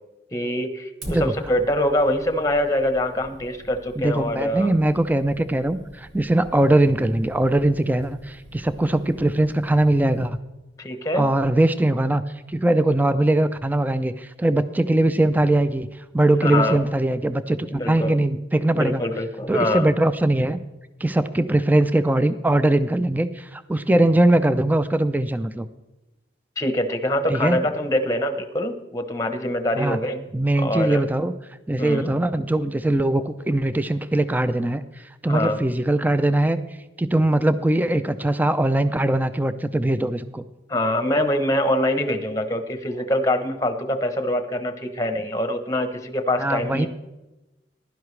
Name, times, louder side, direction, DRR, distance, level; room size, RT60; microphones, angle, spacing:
voice 1, 0.3-4.7 10.8-11.3 16.4-16.8 17.7-18.2 18.7-19.9 26.6-30.2 30.6-31.0 31.8-32.1 35.3-35.6 40.7-46.9, left 1 dB, 15° left, 8 dB, 0.8 m, -24 dB
Fire, 1.0-10.3, equal, 65° right, 1.9 m, -44 dB
voice 2, 4.0-10.4 11.2-12.2 12.5-15.9 16.1-19.0 19.5-20.6 21.0-25.7 27.3-27.6 29.8-30.0 30.3-31.3 31.7-34.8 35.2-36.6 37.0-40.4 46.4-46.9, right 1 dB, 10° right, 12 dB, 0.4 m, -21 dB
15.5 x 11.5 x 3.2 m, 1.0 s
head